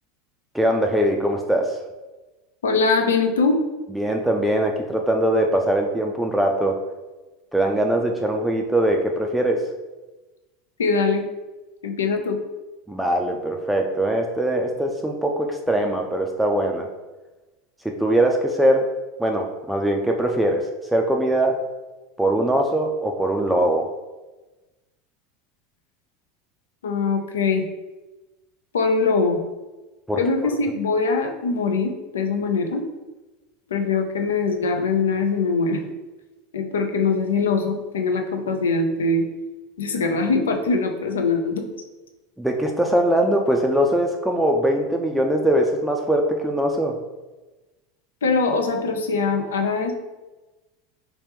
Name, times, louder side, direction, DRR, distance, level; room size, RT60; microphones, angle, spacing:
voice 1, 0.5-1.8 3.9-6.8 7.5-9.6 12.9-16.9 17.8-18.9 19.2-20.7 20.9-21.6 22.2-23.9 30.1-30.2 42.4-47.0, right 1 dB, 5° right, 1 dB, 0.4 m, -21 dB
voice 2, 2.6-3.6 10.8-11.3 11.8-12.4 26.8-27.6 28.7-29.4 30.2-32.8 33.7-35.8 36.5-39.3 39.8-41.6 48.2-49.9, left 4 dB, 85° left, 4 dB, 0.5 m, -22 dB
3.3 x 3.0 x 3.3 m, 1.1 s
hypercardioid pair, 90°, 0 cm